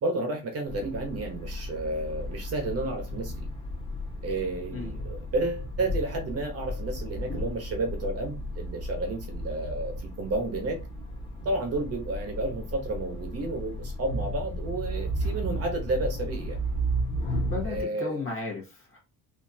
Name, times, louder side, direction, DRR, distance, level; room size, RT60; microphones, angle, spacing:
voice 1, 0.0-3.5 4.2-10.8 11.4-16.6 17.6-18.2, right 2 dB, 40° right, 1.0 m, -31 dB
sound 1, 0.7-17.8, equal, 15° left, 1.2 m, -34 dB
voice 2, 17.4-19.0, left 3 dB, 35° left, 1.5 m, -35 dB
4.2 x 2.7 x 2.7 m
cardioid pair, 150°, 38 cm